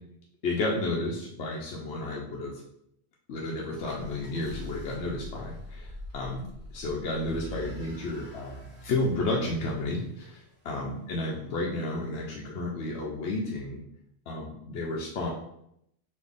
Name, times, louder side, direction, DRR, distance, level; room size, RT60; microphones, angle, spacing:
voice 1, 0.4-2.6 3.3-6.5 6.7-13.8 14.3-15.3, left 2 dB, 70° left, -2 dB, 0.9 m, -32 dB
sound 1, 3.8-10.7, left 1 dB, 50° right, 1.7 m, -44 dB
4.2 x 2.8 x 3.4 m, 0.75 s
omnidirectional pair, 1.2 m